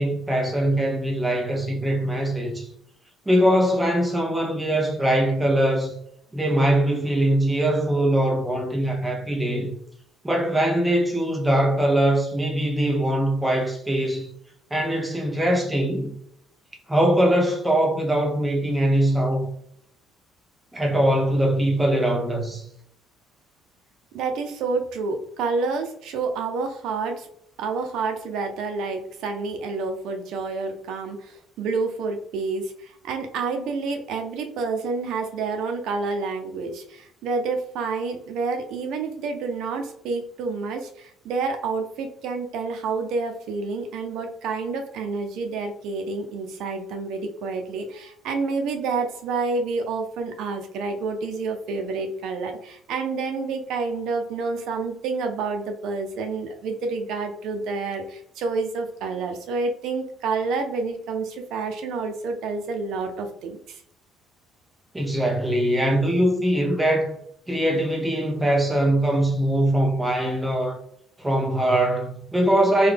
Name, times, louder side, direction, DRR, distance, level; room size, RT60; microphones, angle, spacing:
voice 1, 0.0-2.7 3.3-5.9 6.3-9.7 10.2-14.3 14.7-16.1 16.9-19.5 20.7-22.6 64.9-67.2 67.5-70.8 71.2-72.9, right 1 dB, 5° right, 0.6 m, -22 dB
voice 2, 24.1-27.3 27.6-63.8, right 4 dB, 65° right, 0.6 m, -29 dB
3.7 x 2.3 x 3.3 m
cardioid pair, 180°, 0 cm